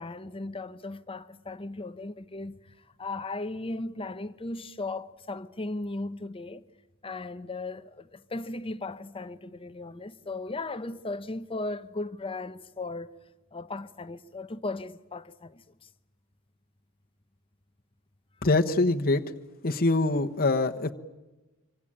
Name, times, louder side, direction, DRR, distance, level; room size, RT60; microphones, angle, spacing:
voice 1, 0.0-2.6 3.0-6.6 7.0-13.1 13.5-15.6, left 2 dB, 25° left, 0.8 m, -36 dB
voice 2, 18.4-19.2 19.6-20.9, left 2 dB, 40° left, 1.2 m, -24 dB
26.5 x 25.0 x 8.9 m
head